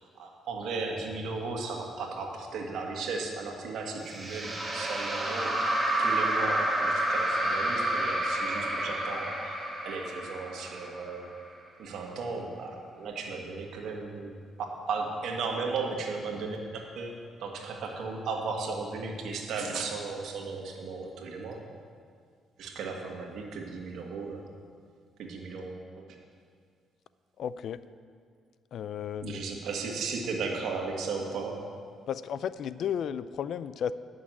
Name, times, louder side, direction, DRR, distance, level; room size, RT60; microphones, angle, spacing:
voice 1, 0.2-5.6 6.0-9.5 9.8-11.4 11.8-14.3 14.6-17.1 17.4-21.6 22.6-24.4 25.2-26.0 29.2-31.6, right 4 dB, 75° right, 1 dB, 1.5 m, -35 dB
sound 1, 4.1-11.3, right 1 dB, 15° right, 1.8 m, -29 dB
voice 2, 27.4-27.8 28.7-29.5 32.1-33.9, left 8 dB, 70° left, 15 dB, 0.3 m, -33 dB
9.5 x 6.2 x 7.5 m, 2.1 s
cardioid pair, 90°, 0 cm